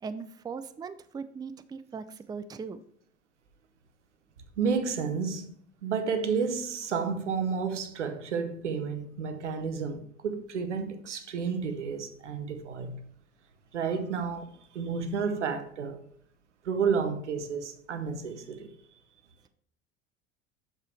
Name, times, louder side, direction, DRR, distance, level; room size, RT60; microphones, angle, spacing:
voice 1, 0.0-2.8, right 5 dB, 10° right, 0.4 m, -39 dB
voice 2, 4.6-5.5 5.8-13.0 13.7-16.0 16.6-18.7, right 5 dB, 85° right, 0.9 m, -31 dB
7.6 x 6.8 x 3.3 m
figure-of-eight pair, 65°, 35 cm